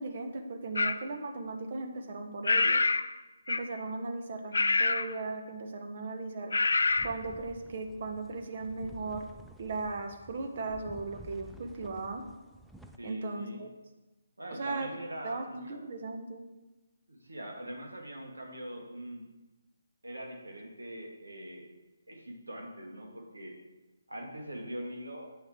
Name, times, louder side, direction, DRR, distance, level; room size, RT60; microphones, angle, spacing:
voice 1, 0.0-2.8 3.5-6.5 7.0-9.3 9.6-12.2 13.0-13.7 14.6-14.9 15.2-16.4, right 3 dB, 50° right, 5 dB, 1.1 m, -37 dB
sound 1, 0.8-1.0 2.4-3.1 3.5-3.8 4.5-5.1 6.5-7.1, left 3 dB, 75° left, 0.3 m, -26 dB
sound 2, 6.7-13.0, right 1 dB, ahead, 0.4 m, -52 dB
voice 2, 13.0-13.6 14.4-15.8 17.1-19.3 20.0-21.7 22.1-23.6 24.1-25.3, right 1 dB, 85° right, 1 dB, 1.8 m, -42 dB
7.9 x 6.2 x 4.4 m, 1.1 s
figure-of-eight pair, 145°, 0 cm